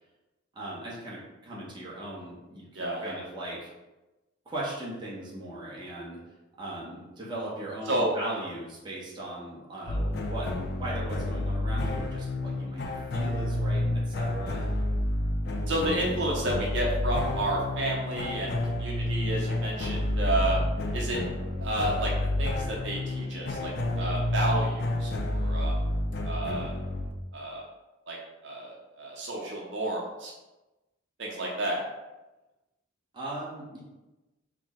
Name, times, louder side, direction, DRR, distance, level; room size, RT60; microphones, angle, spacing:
voice 1, 0.5-3.7 4.5-6.2 6.6-10.5 10.7-12.8 13.1-14.8 33.1-33.8, right 1 dB, 25° right, -6 dB, 0.9 m, -38 dB
voice 2, 2.7-3.1 7.9-8.1 15.7-18.5 18.8-20.6 20.9-21.2 21.6-22.1 22.4-25.9 26.2-26.7 27.3-27.6 28.1-28.2 28.4-30.3 31.2-31.8, right 1 dB, 60° right, -2 dB, 0.7 m, -31 dB
sound 1, 9.9-27.1, left 1 dB, 55° left, 0.4 m, -30 dB
4.4 x 2.1 x 3.7 m, 1.1 s
head